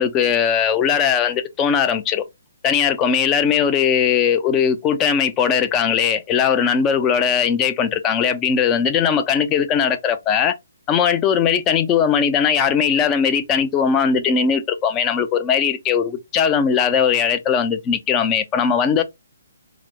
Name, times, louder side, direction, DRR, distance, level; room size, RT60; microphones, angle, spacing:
voice 1, 0.0-2.2 2.6-10.6 10.9-19.0, left 7 dB, 20° left, 0.4 m, -19 dB
3.8 x 2.0 x 3.0 m
hypercardioid pair, 145°, 0 cm